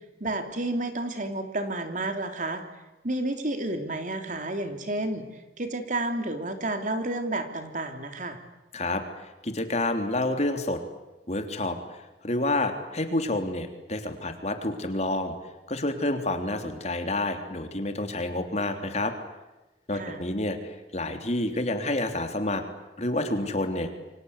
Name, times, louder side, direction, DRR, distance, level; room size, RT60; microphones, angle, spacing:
voice 1, 0.2-2.6 3.0-8.4 19.9-20.2, right 2 dB, 45° right, 7 dB, 3.3 m, -31 dB
voice 2, 8.7-10.8 11.3-15.3 15.7-19.1 19.9-22.6 23.0-23.9, left 2 dB, 40° left, 6 dB, 3.4 m, -29 dB
28.5 x 25.0 x 8.3 m, 1.1 s
head